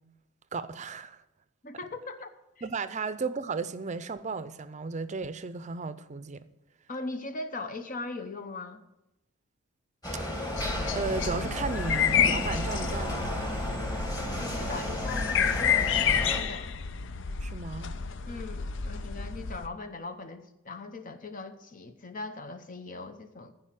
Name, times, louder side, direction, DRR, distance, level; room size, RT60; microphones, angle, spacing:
voice 1, 0.5-1.2 2.6-6.5 10.9-13.3 17.3-17.9, right 4 dB, 35° right, 0.6 m, -35 dB
voice 2, 1.6-2.3 2.6-2.7 6.9-8.8 14.4-16.7 18.3-23.5, left 3 dB, 40° left, 0.9 m, -40 dB
sound 1, 10.0-16.4, equal, 20° left, 2.3 m, -33 dB
sound 2, 10.6-19.7, left 7 dB, 65° left, 0.6 m, -30 dB
14.5 x 5.0 x 7.5 m
head